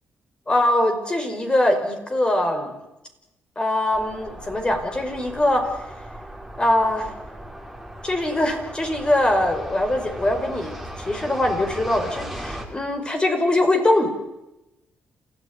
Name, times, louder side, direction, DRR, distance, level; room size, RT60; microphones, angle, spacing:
voice 1, 0.5-2.7 3.6-5.7 6.6-7.1 8.0-10.8 11.1-14.1, left 1 dB, 20° left, 5 dB, 5.4 m, -22 dB
sound 1, 3.9-12.7, right 1 dB, ahead, 4.7 m, -37 dB
28.5 x 14.5 x 9.8 m, 0.94 s
cardioid pair, 90°, 4 cm